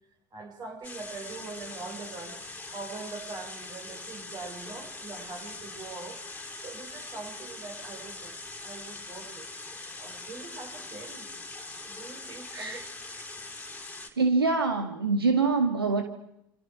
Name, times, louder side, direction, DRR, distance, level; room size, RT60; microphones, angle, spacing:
voice 1, 0.3-2.4 2.7-9.5 10.0-11.4 11.9-12.8, right 4 dB, 35° right, 3 dB, 7.5 m, -43 dB
sound 1, 0.8-14.1, left 3 dB, 10° left, 4.3 m, -42 dB
voice 2, 14.2-16.0, right 4 dB, 80° right, 6 dB, 2.0 m, -25 dB
28.0 x 27.5 x 6.4 m, 0.79 s
figure-of-eight pair, 70°, 12 cm